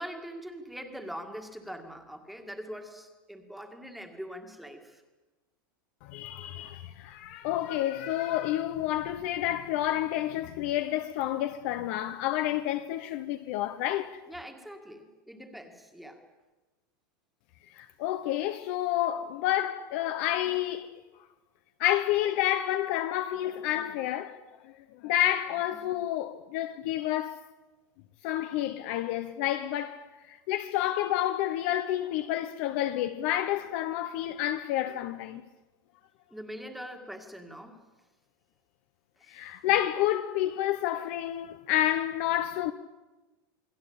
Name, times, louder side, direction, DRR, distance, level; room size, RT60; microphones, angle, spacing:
voice 1, 0.0-5.0 14.3-16.3 25.5-25.8 32.7-32.8 36.3-37.8 39.2-39.5, equal, ahead, 2.0 m, -43 dB
voice 2, 6.0-14.2 17.8-21.0 21.8-24.7 25.0-27.5 28.2-35.4 39.3-42.7, left 13 dB, 35° left, 0.9 m, -29 dB
28.5 x 20.5 x 8.8 m
supercardioid pair, 180°, 12 cm